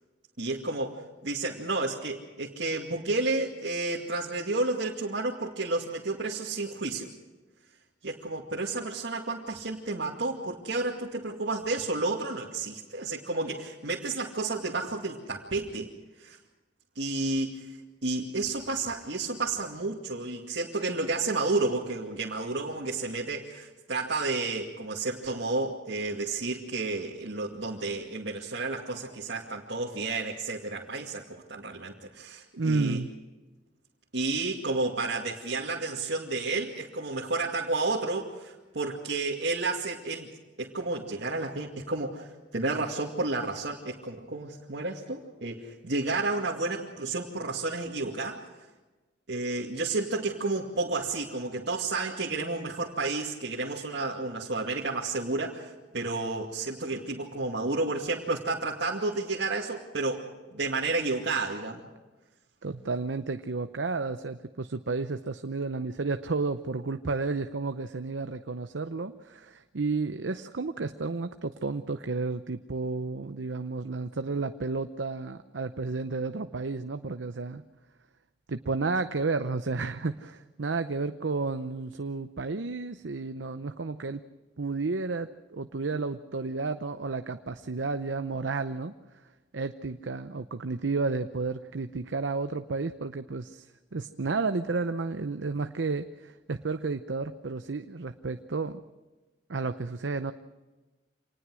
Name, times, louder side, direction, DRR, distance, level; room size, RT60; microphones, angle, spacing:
voice 1, 0.4-7.1 8.0-15.9 16.2-16.4 16.9-17.8 18.0-33.0 34.1-40.3 40.6-48.5 49.3-61.9, right 3 dB, 70° right, -4 dB, 2.4 m, -31 dB
voice 2, 32.6-33.1 62.6-77.6 78.5-84.2 84.6-88.9 89.5-93.7 93.9-98.8 99.5-100.3, right 3 dB, 90° right, 9 dB, 0.8 m, -32 dB
26.5 x 19.5 x 6.3 m, 1.2 s
head